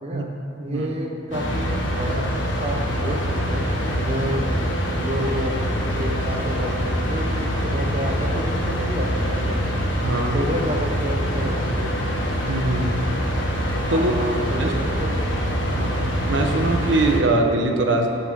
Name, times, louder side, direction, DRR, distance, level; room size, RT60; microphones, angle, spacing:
voice 1, 0.0-4.5 5.0-5.7 6.0-9.7 10.3-12.0 13.9-15.2 15.6-15.9, equal, 35° right, 1 dB, 0.9 m, -30 dB
sound 1, 1.3-17.2, equal, 85° left, 1.8 m, -24 dB
voice 2, 10.0-10.4 12.5-12.9 13.9-14.1 14.6-14.7 15.8-15.9 16.3-18.1, right 2 dB, 80° right, 2 dB, 1.2 m, -22 dB
19.5 x 7.1 x 3.7 m, 2.7 s
head